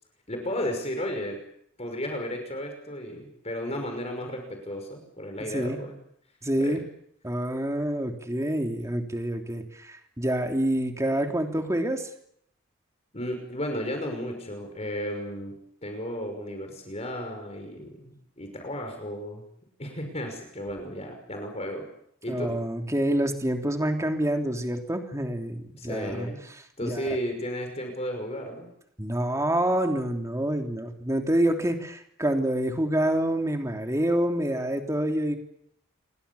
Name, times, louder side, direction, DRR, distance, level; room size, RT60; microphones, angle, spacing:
voice 1, 0.3-1.4 1.8-6.0 6.6-6.8 13.1-19.5 19.8-21.9 22.2-22.6 25.7-26.4 26.8-28.7, equal, 30° left, 4 dB, 5.8 m, -34 dB
voice 2, 6.4-6.8 7.2-12.1 22.3-26.3 26.8-27.2 29.0-35.4, right 1 dB, 15° right, 4 dB, 3.2 m, -27 dB
29.0 x 24.0 x 7.1 m, 0.71 s
head